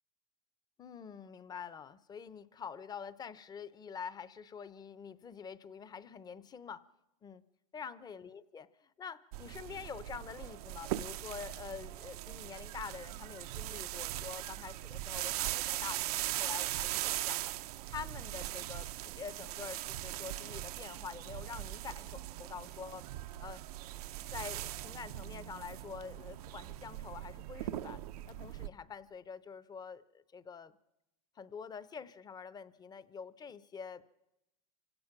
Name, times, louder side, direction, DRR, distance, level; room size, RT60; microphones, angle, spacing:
voice 1, 0.8-6.8 7.2-7.4 7.7-17.5 17.9-18.9 19.2-23.1 23.4-23.6 24.3-28.0 28.3-30.7 31.4-34.0, left 6 dB, 20° left, 17 dB, 0.7 m, -46 dB
sound 1, 9.3-28.7, right 15 dB, 80° right, 0.7 m, -40 dB
26.5 x 16.5 x 5.9 m, 0.90 s
supercardioid pair, 130°, 19 cm